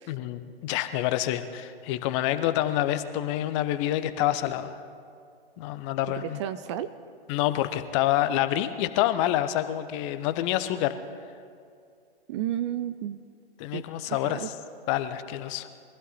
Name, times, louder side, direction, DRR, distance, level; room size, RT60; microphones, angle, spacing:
voice 1, 0.1-4.8 5.6-6.4 7.3-11.0 13.6-14.5 14.9-15.7, left 13 dB, 30° left, 11 dB, 0.8 m, -27 dB
voice 2, 6.1-6.9 12.3-13.2 13.7-14.5, right 11 dB, 30° right, 13 dB, 0.4 m, -33 dB
23.0 x 15.0 x 4.1 m, 2.4 s
figure-of-eight pair, 115°, 29 cm